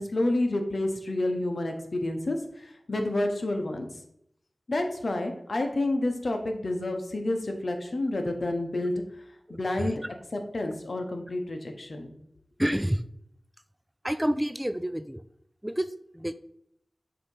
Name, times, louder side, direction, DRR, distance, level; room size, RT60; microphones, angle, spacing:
voice 1, 0.0-3.9 4.7-8.9 9.5-10.0 10.3-12.1, left 1 dB, 65° left, 4 dB, 0.9 m, -29 dB
voice 2, 12.6-13.0 14.0-15.2 15.6-15.9 16.1-16.3, equal, 10° right, 12 dB, 0.3 m, -28 dB
6.8 x 2.9 x 5.4 m, 0.73 s
wide cardioid pair, 50°, 0 cm